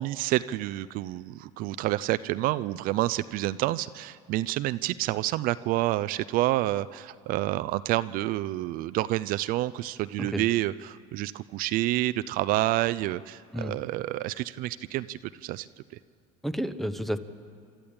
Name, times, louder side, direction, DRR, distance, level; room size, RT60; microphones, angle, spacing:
voice 1, 0.0-15.7, right 16 dB, 60° right, 15 dB, 0.5 m, -28 dB
voice 2, 16.4-17.2, equal, ahead, 11 dB, 0.8 m, -30 dB
28.5 x 13.0 x 8.7 m, 2.3 s
supercardioid pair, 120°, 17 cm